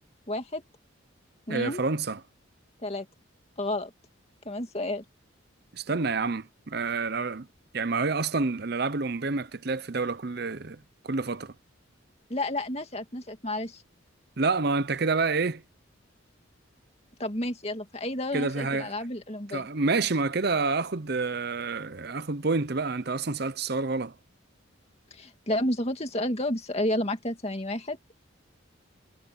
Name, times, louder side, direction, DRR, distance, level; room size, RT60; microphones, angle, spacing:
voice 1, 0.3-0.6 1.5-1.8 2.8-3.1 3.6-3.9 4.5-5.0 12.3-13.8 17.2-19.7 25.1-28.0, left 1 dB, 30° left, 2.3 m, -31 dB
voice 2, 1.5-2.2 5.7-7.5 7.7-11.5 14.4-15.6 18.3-18.9 19.5-24.2, right 4 dB, 50° right, 0.8 m, -28 dB
head